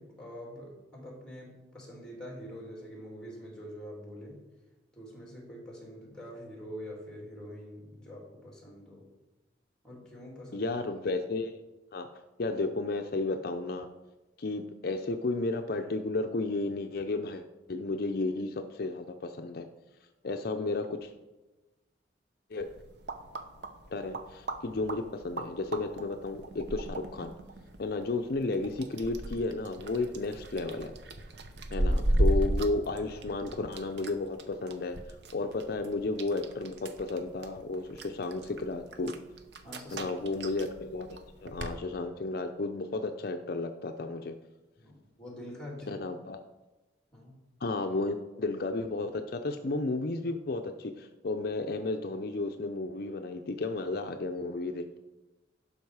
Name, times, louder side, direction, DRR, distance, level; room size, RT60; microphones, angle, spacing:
voice 1, 0.0-4.4 4.9-9.1 9.8-10.7 31.8-31.9 39.6-40.1 44.8-46.0 47.1-47.4, equal, 5° left, -2 dB, 2.8 m, -45 dB
voice 2, 10.5-11.6 11.9-12.1 12.4-13.9 14.4-19.7 20.2-21.1 22.5-22.7 23.9-27.3 27.8-30.9 31.7-39.1 39.9-41.1 41.4-44.4 45.9-46.4 47.6-55.0, left 3 dB, 55° left, 6 dB, 0.5 m, -33 dB
sound 1, 22.6-41.8, right 1 dB, 65° right, 0.8 m, -36 dB
11.5 x 5.5 x 4.8 m, 1.1 s
head